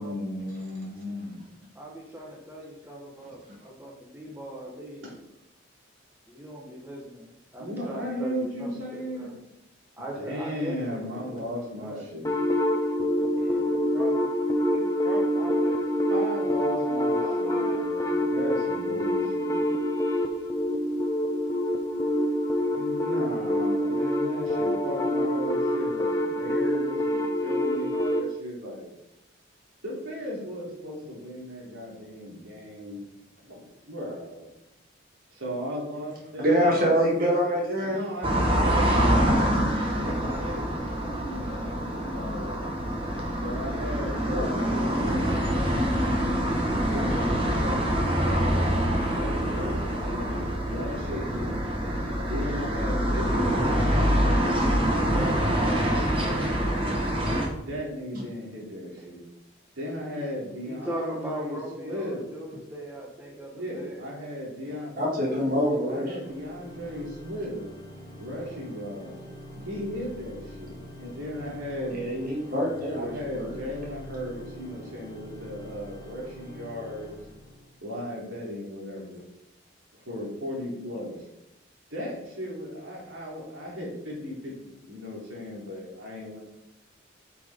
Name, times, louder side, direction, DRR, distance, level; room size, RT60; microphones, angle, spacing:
voice 1, 0.0-1.4 5.0-5.1 7.6-9.3 10.2-12.3 16.1-19.6 22.7-28.9 29.8-34.5 35.3-36.8 37.8-40.9 41.2-42.7 43.3-45.4 46.9-48.5 49.1-51.6 52.3-57.2 57.7-59.2 59.8-62.2 63.5-64.9 65.3-67.6 68.2-69.2 69.6-72.0 72.9-77.2 77.8-79.2 80.1-81.2 81.9-86.4, equal, 85° right, -4 dB, 3.1 m, -36 dB
voice 2, 1.7-5.0 6.3-9.4 9.9-12.1 13.4-14.4 14.7-15.9 17.2-18.1 60.7-64.1, right 1 dB, 10° right, -2 dB, 1.2 m, -39 dB
sound 1, 12.2-28.2, equal, 15° left, 0.8 m, -26 dB
voice 3, 36.4-38.0 44.3-45.2 53.3-53.7 65.0-66.1 71.9-73.5, equal, 45° right, -3 dB, 2.0 m, -26 dB
sound 2, 38.2-57.5, equal, 25° right, 1.4 m, -25 dB
Organ, 66.2-78.0, equal, 35° left, 3.1 m, -44 dB
8.5 x 6.1 x 3.7 m, 0.85 s
head